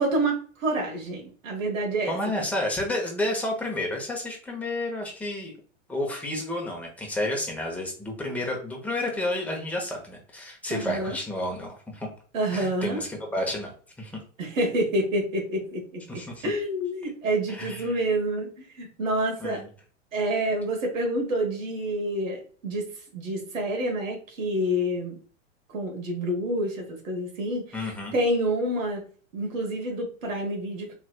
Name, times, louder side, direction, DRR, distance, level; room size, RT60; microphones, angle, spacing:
voice 1, 0.0-2.2 10.7-11.2 12.3-13.0 14.4-19.6 20.1-22.9 23.1-25.2 25.7-29.0 29.3-30.9, right 1 dB, 85° right, 1 dB, 1.4 m, -28 dB
voice 2, 2.1-5.5 5.9-12.1 12.5-13.7 14.0-14.2 16.1-16.5 17.5-18.0 19.4-19.7 27.7-28.2, left 1 dB, 5° left, -1 dB, 0.9 m, -31 dB
3.2 x 3.1 x 2.3 m, 0.43 s
hypercardioid pair, 115°, 39 cm